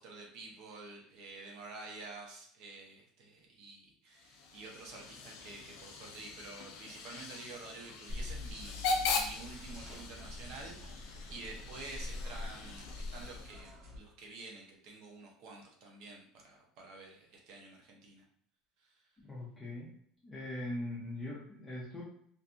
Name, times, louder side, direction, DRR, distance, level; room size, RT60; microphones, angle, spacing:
voice 1, 0.0-18.2, right 3 dB, 50° right, 1 dB, 0.7 m, -49 dB
Hiss / Train / Alarm, 4.1-13.8, left 4 dB, 60° left, 0.4 m, -40 dB
sound 1, 8.1-14.0, left 2 dB, 90° right, 0.7 m, -44 dB
voice 2, 19.2-19.9 20.2-22.0, left 1 dB, 10° left, -7 dB, 0.5 m, -41 dB
2.6 x 2.5 x 2.3 m, 0.65 s
cardioid pair, 180°, 0 cm